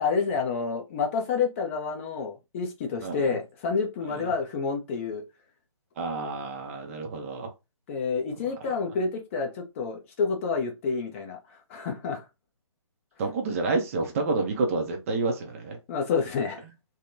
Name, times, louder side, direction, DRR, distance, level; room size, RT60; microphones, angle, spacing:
voice 1, 0.0-5.2 7.9-12.2 15.9-16.6, left 5 dB, 25° left, 0.6 m, -29 dB
voice 2, 6.0-7.5 13.2-15.8, right 3 dB, 25° right, 0.5 m, -29 dB
3.4 x 2.1 x 2.7 m
figure-of-eight pair, 140°, 17 cm